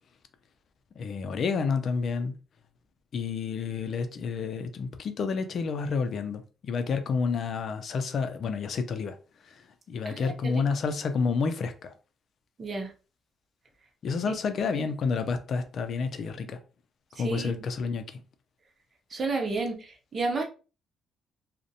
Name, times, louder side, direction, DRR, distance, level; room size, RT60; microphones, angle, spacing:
voice 1, 1.0-2.3 3.1-9.2 9.4-9.6 9.9-11.9 14.0-16.6 17.2-18.2, left 5 dB, 60° left, 0.4 m, -29 dB
voice 2, 10.1-10.6 12.6-12.9 17.2-17.6 19.1-19.8 20.1-20.4, right 3 dB, 40° right, 0.7 m, -31 dB
2.5 x 2.1 x 2.7 m
cardioid pair, 90°, 0 cm